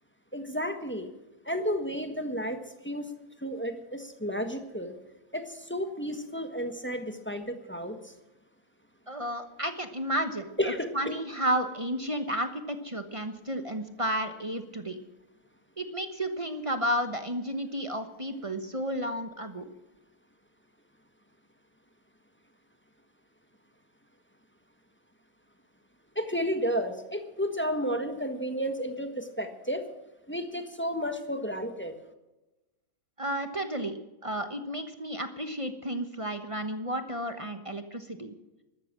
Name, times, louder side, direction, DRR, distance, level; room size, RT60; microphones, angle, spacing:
voice 1, 0.3-1.1 1.4-2.6 2.8-3.0 3.4-4.9 5.3-8.0 10.6-11.1 26.1-29.8 30.3-31.9, equal, 5° left, 7 dB, 1.0 m, -32 dB
voice 2, 9.1-10.5 10.9-15.0 15.8-19.7 33.2-34.0 34.2-38.3, right 1 dB, 25° right, 8 dB, 0.7 m, -32 dB
13.5 x 13.0 x 7.4 m, 1.0 s
omnidirectional pair, 2.2 m